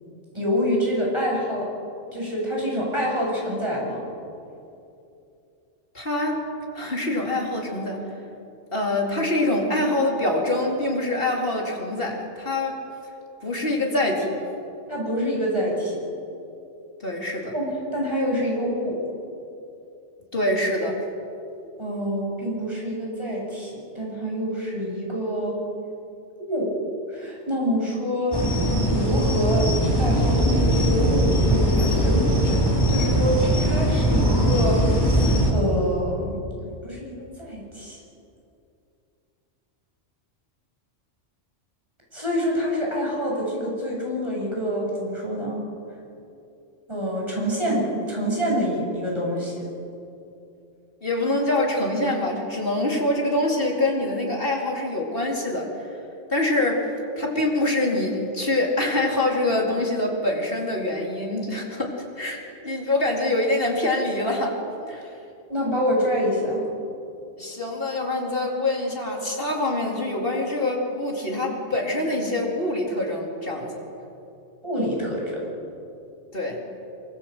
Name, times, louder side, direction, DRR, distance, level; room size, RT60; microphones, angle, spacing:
voice 1, 0.3-1.7 2.1-4.0 14.9-16.0 17.5-19.0 21.8-25.6 26.4-26.7 27.1-28.4 28.9-29.7 30.0-32.5 32.9-36.4 36.8-38.0 42.1-45.6 46.9-49.6 65.5-66.6 74.6-75.3, equal, 25° right, -3 dB, 8.1 m, -26 dB
voice 2, 5.9-6.4 6.7-8.1 8.7-12.7 13.4-14.4 17.0-17.5 20.3-21.0 51.0-55.7 56.3-56.9 57.2-62.4 62.6-64.5 64.8-65.1 67.4-73.8 76.3-76.6, left 1 dB, 50° left, -1 dB, 4.5 m, -25 dB
sound 1, 28.3-35.5, equal, 20° left, 4.2 m, -20 dB
25.5 x 24.0 x 8.1 m, 2.7 s
omnidirectional pair, 1.2 m